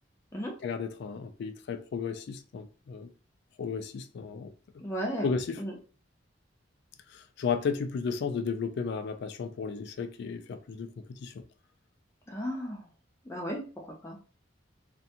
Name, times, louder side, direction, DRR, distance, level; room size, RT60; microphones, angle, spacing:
voice 1, 0.6-3.1 3.6-4.8 5.2-5.6 7.1-11.3, left 5 dB, 60° left, 0.3 m, -34 dB
voice 2, 4.8-5.7 12.3-12.9 13.2-14.2, equal, 15° left, 0.6 m, -35 dB
2.5 x 2.2 x 2.8 m
head